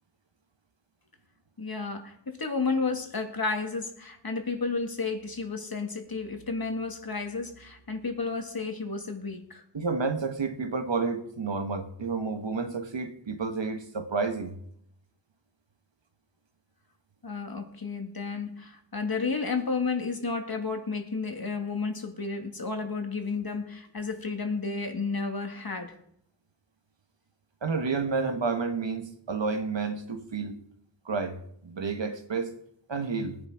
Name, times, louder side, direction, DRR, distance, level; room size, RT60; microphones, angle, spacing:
voice 1, 1.6-9.6 17.2-25.9, left 4 dB, 50° left, 2.2 m, -32 dB
voice 2, 9.7-14.6 27.6-30.6 31.0-32.5 32.9-33.4, right 4 dB, 80° right, 1.6 m, -30 dB
19.0 x 9.9 x 5.0 m
wide cardioid pair, 60°, 44 cm